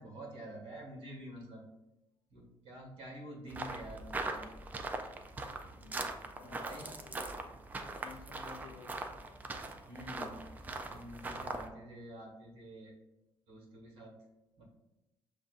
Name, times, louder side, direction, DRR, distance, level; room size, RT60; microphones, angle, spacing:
voice 1, 0.0-1.7 2.3-4.4 6.4-7.0 9.9-10.4 10.9-13.0 13.5-14.2 14.6-14.7, right 1 dB, 65° right, -1 dB, 1.4 m, -48 dB
sound 1, 3.5-11.7, right 2 dB, 20° right, 0.3 m, -41 dB
voice 2, 5.7-6.1 6.4-9.4, left 6 dB, 65° left, 6 dB, 0.5 m, -55 dB
6.6 x 2.5 x 2.4 m, 0.95 s
cardioid pair, 150°, 10 cm